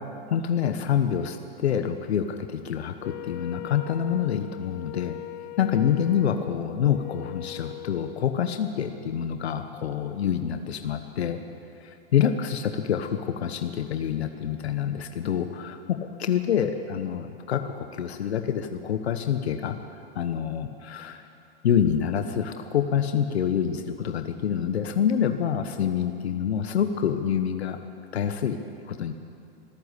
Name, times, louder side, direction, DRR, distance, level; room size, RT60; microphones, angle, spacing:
voice 1, 0.3-5.2 5.6-11.4 11.8-21.3 21.6-27.8 28.1-28.6 28.8-29.1, left 8 dB, 85° left, 7 dB, 1.3 m, -27 dB
Wind instrument woodwind instrument, 3.0-8.2, left 14 dB, 55° left, 0.6 m, -40 dB
25.0 x 13.5 x 8.3 m, 2.6 s
hypercardioid pair, 120°, 31 cm